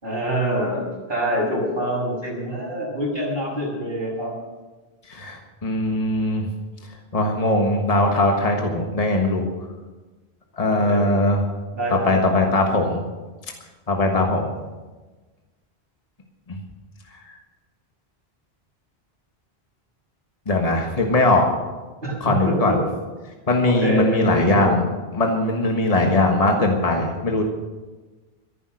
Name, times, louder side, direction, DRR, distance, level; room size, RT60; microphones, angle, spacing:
voice 1, 0.0-4.3 10.7-11.1 11.7-12.5 22.0-22.8 23.6-24.7, right 1 dB, 55° right, -4 dB, 6.4 m, -26 dB
voice 2, 5.1-6.5 7.1-9.5 10.6-11.4 12.0-13.0 13.9-14.5 20.5-21.5 22.2-22.8 23.5-24.9 25.1-27.4, left 2 dB, 35° left, 2 dB, 1.6 m, -20 dB
14.0 x 11.0 x 6.4 m, 1.2 s
omnidirectional pair, 1.0 m